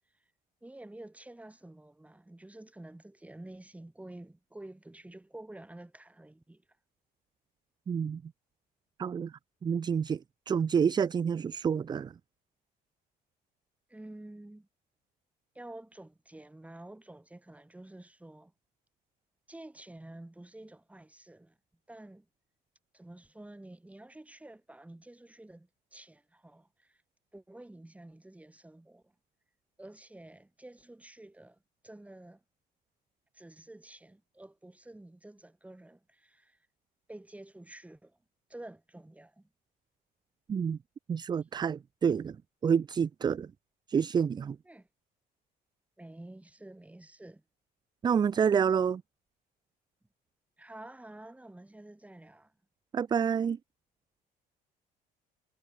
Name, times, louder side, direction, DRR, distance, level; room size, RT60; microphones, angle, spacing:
voice 1, 0.6-6.6 13.9-14.7 15.6-18.5 19.5-21.6 21.9-22.3 22.9-27.0 27.3-29.1 29.8-31.6 31.8-32.4 33.3-36.6 37.1-38.2 38.5-39.5 44.7-44.9 46.0-47.4 50.6-52.5, right 1 dB, 10° right, 3.4 m, -49 dB
voice 2, 7.9-8.3 9.0-9.3 9.6-12.1 40.5-40.8 41.1-42.4 42.6-43.5 43.9-44.6 48.0-49.0 52.9-53.6, right 7 dB, 25° right, 0.4 m, -28 dB
cardioid pair, 110°, 17 cm